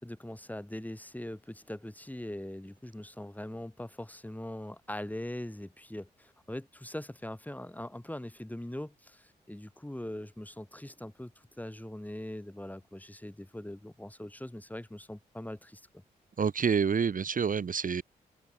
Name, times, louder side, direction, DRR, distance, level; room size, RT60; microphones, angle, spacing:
voice 1, 0.0-11.3 11.6-15.9, left 1 dB, 10° left, 5.4 m, -41 dB
voice 2, 16.4-18.0, right 6 dB, 50° right, 1.8 m, -28 dB
supercardioid pair, 50°, 18 cm